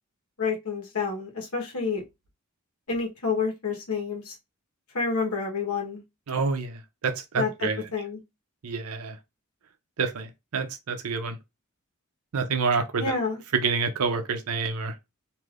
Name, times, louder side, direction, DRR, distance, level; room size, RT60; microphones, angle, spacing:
voice 1, 0.4-2.0 2.9-4.4 4.9-6.0 7.4-7.5 7.9-8.2 13.0-13.4, left 4 dB, 85° left, 1.2 m, -28 dB
voice 2, 6.3-7.8 8.6-9.2 10.0-11.4 12.3-13.2 13.5-14.9, right 4 dB, 80° right, 0.6 m, -28 dB
3.3 x 2.6 x 2.5 m
head